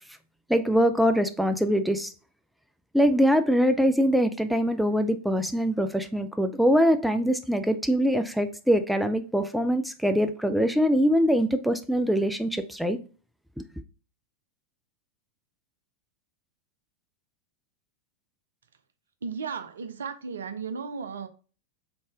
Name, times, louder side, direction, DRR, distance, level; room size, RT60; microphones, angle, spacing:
voice 1, 0.5-2.1 2.9-13.0, equal, ahead, 0.4 m, -23 dB
voice 2, 19.2-21.3, right 5 dB, 65° right, 0.5 m, -35 dB
3.9 x 3.7 x 3.5 m
figure-of-eight pair, 90°, 0 cm